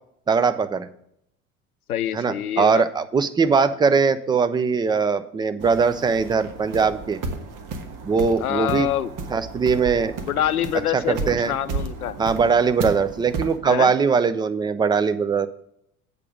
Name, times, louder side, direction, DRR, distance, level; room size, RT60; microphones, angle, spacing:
voice 1, 0.3-0.9 2.1-7.2 8.0-8.9 9.3-10.1 10.9-11.5 12.2-15.5, right 5 dB, 10° right, 11 dB, 0.3 m, -21 dB
voice 2, 1.9-2.8 8.4-9.1 10.3-12.2 13.6-13.9, left 11 dB, 90° left, 15 dB, 0.6 m, -25 dB
sound 1, 5.6-13.6, right 3 dB, 45° right, 1.4 m, -33 dB
8.4 x 5.1 x 6.3 m, 0.71 s
figure-of-eight pair, 70°, 43 cm